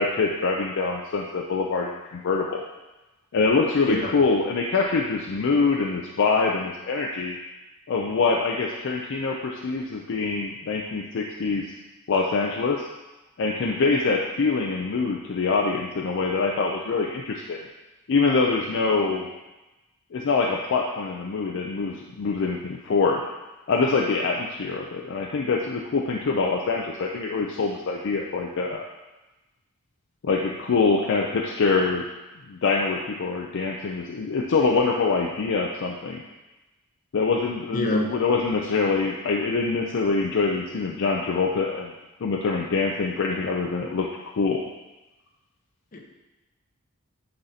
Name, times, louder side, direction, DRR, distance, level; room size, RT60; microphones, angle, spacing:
voice 1, 0.0-2.6 3.3-7.4 7.9-11.7 12.1-12.9 13.4-17.6 18.1-19.3 20.1-23.2 23.7-28.9 30.2-32.0 32.5-36.2 37.1-41.9 42.2-44.6, left 4 dB, 60° left, 0 dB, 0.4 m, -24 dB
voice 2, 37.7-38.1 45.9-46.0, left 1 dB, 40° left, 0 dB, 0.9 m, -24 dB
8.7 x 3.9 x 2.8 m, 1.1 s
head